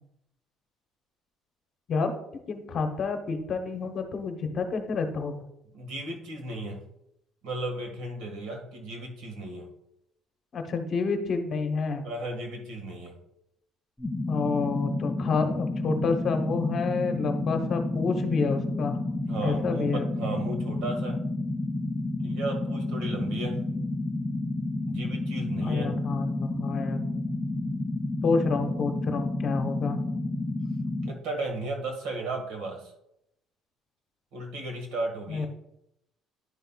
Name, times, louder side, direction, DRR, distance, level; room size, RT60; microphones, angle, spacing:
voice 1, 2.5-5.4 10.5-12.0 14.3-19.0 19.4-20.1 25.6-27.0 28.2-30.0 35.3-35.5, left 4 dB, 40° left, 6 dB, 0.9 m, -29 dB
voice 2, 5.7-6.9 7.4-9.7 12.0-13.1 19.3-21.2 22.2-23.6 24.9-26.0 31.0-32.9 34.3-35.5, right 2 dB, 75° right, 3 dB, 1.7 m, -35 dB
sound 1, 14.0-31.1, left 2 dB, 5° left, 0.4 m, -30 dB
10.5 x 5.5 x 2.3 m, 0.80 s
cardioid pair, 135°, 0 cm